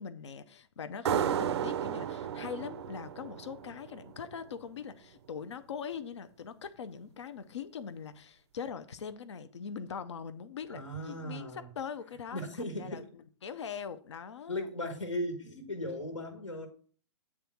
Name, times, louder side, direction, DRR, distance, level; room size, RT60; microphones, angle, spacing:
voice 1, 0.0-14.7, left 7 dB, 70° left, 0.7 m, -42 dB
sound 1, 1.0-4.4, right 9 dB, 60° right, 0.6 m, -33 dB
voice 2, 10.7-11.7 12.3-13.1 14.5-16.7, left 1 dB, 85° left, 1.6 m, -37 dB
8.8 x 3.5 x 6.2 m
figure-of-eight pair, 115°, 15 cm